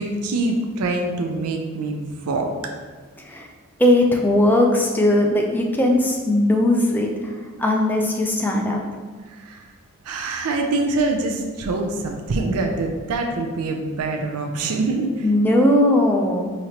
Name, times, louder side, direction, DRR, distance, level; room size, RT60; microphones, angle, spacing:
voice 1, 0.0-2.5 9.3-9.6 10.0-15.3, right 2 dB, 90° right, 2 dB, 0.4 m, -24 dB
voice 2, 3.8-7.3 7.6-8.8 15.2-16.5, left 1 dB, 10° left, 0 dB, 0.3 m, -18 dB
4.9 x 2.9 x 2.8 m, 1.5 s
head